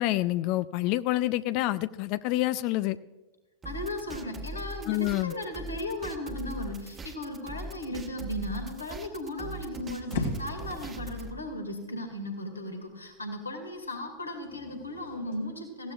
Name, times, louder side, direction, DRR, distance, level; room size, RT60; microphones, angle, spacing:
voice 1, 0.0-3.0 4.9-5.3, left 16 dB, 50° left, 15 dB, 0.4 m, -27 dB
voice 2, 3.6-15.9, left 1 dB, 85° left, 4 dB, 2.2 m, -36 dB
sound 1, 3.6-11.3, right 1 dB, 20° right, 1.2 m, -40 dB
sound 2, 9.0-15.4, left 3 dB, 70° left, 2.4 m, -41 dB
18.5 x 15.5 x 2.4 m, 1.2 s
figure-of-eight pair, 90°, 0 cm